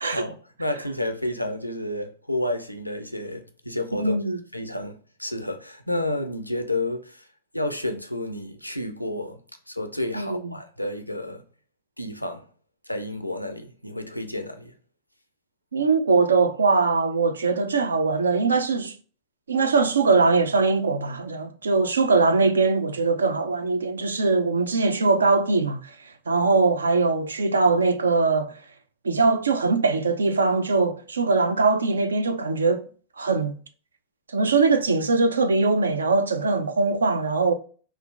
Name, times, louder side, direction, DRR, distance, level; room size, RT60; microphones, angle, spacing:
voice 1, 0.1-4.2 4.5-7.3 7.5-9.4 9.7-11.4 12.0-12.5 12.9-14.7, left 1 dB, 90° left, 0.4 m, -30 dB
voice 2, 3.9-4.4 10.1-10.5 15.7-19.0 19.5-26.0 26.3-28.6 29.0-32.9 33.2-33.6 34.3-37.5, right 3 dB, 70° right, 0.4 m, -21 dB
3.6 x 2.4 x 2.3 m
figure-of-eight pair, 90°, 0 cm